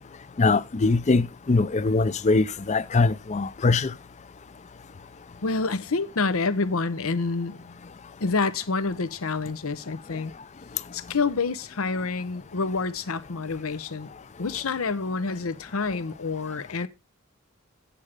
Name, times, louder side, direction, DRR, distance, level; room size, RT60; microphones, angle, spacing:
voice 1, 0.4-3.9, left 3 dB, 35° left, 0.5 m, -22 dB
voice 2, 5.4-7.8 8.2-10.3 10.9-14.1 14.4-16.9, left 4 dB, 85° left, 0.9 m, -28 dB
8.4 x 7.4 x 5.0 m
head